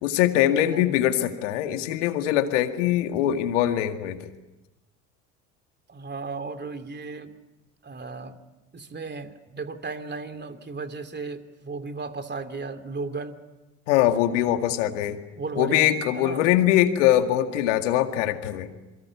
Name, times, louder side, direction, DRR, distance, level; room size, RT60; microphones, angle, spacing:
voice 1, 0.0-4.2 13.9-15.2 15.6-18.7, left 12 dB, 80° left, 7 dB, 2.1 m, -22 dB
voice 2, 0.6-1.0 5.9-7.3 7.8-8.4 8.7-13.4 15.3-16.5, right 4 dB, 30° right, 8 dB, 2.9 m, -35 dB
27.5 x 23.5 x 8.4 m, 1.0 s
hypercardioid pair, 65°, 36 cm